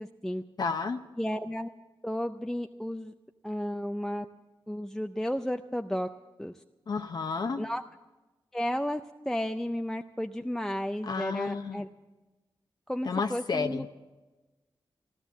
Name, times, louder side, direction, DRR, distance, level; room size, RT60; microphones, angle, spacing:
voice 1, 0.0-0.4 1.2-1.7 2.0-3.1 3.4-4.3 4.7-6.1 6.4-6.6 7.6-7.8 8.5-9.0 9.3-11.9 12.9-13.9, equal, 5° left, 6 dB, 0.4 m, -33 dB
voice 2, 0.6-1.0 6.9-7.6 11.0-11.8 13.1-13.8, left 5 dB, 50° left, 6 dB, 0.7 m, -31 dB
15.0 x 13.0 x 7.1 m, 1.1 s
wide cardioid pair, 120°, 9 cm